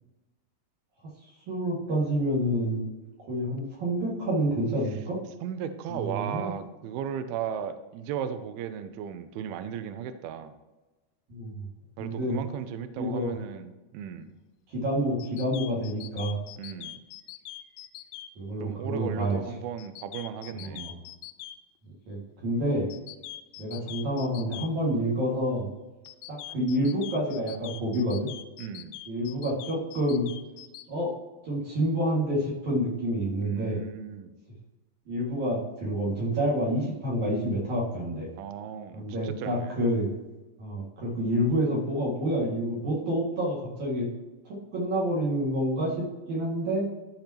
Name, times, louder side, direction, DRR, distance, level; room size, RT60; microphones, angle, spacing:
voice 1, 1.5-2.8 3.3-5.2 5.9-6.5 11.3-11.7 12.0-12.4 13.0-13.3 14.7-16.4 18.4-19.4 20.5-21.0 22.1-22.9 23.6-25.7 26.3-28.3 29.1-30.3 30.9-31.1 31.4-33.8 35.1-38.3 38.9-40.1 40.6-44.1 44.5-46.9, equal, 50° right, -5 dB, 2.9 m, -28 dB
voice 2, 5.4-10.5 12.0-14.3 16.6-17.0 18.6-20.9 28.6-29.0 33.4-34.3 38.4-39.8, right 8 dB, 85° right, 9 dB, 2.2 m, -36 dB
sound 1, 15.2-18.3 19.8-21.6 22.9-24.7 26.1-30.8, left 14 dB, 85° left, 2.8 m, -43 dB
13.5 x 5.2 x 2.9 m, 1.1 s
omnidirectional pair, 5.2 m